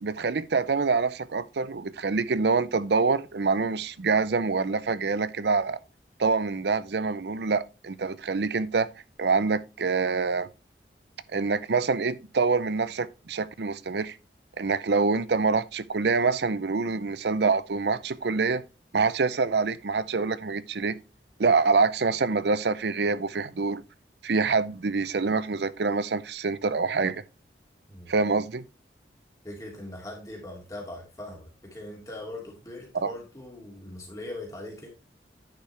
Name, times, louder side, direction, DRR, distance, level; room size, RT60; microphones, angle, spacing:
voice 1, 0.0-5.8 6.2-8.9 9.2-10.5 11.3-14.2 14.6-18.6 18.9-21.0 21.4-23.8 24.2-27.2 28.1-28.6 33.0-33.1, right 4 dB, 70° right, 0.6 m, -26 dB
voice 2, 29.4-34.9, left 1 dB, 20° left, 2.5 m, -40 dB
9.9 x 5.7 x 3.3 m
head